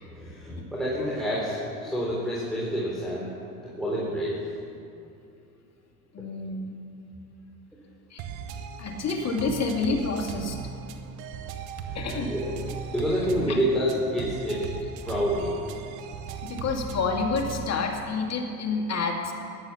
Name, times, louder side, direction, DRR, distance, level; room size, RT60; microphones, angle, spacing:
voice 1, 0.0-3.3 3.6-4.5 11.9-12.5 12.9-14.7 15.0-15.6, equal, ahead, -6 dB, 3.7 m, -28 dB
voice 2, 6.1-6.7 8.1-8.2 8.8-10.6 11.9-12.3 13.5-13.6 16.4-19.3, left 4 dB, 35° left, 2 dB, 2.5 m, -28 dB
sound 1, 8.2-17.8, right 6 dB, 55° right, 1.3 m, -38 dB
14.5 x 10.5 x 7.0 m, 2.6 s
hypercardioid pair, 80°, 43 cm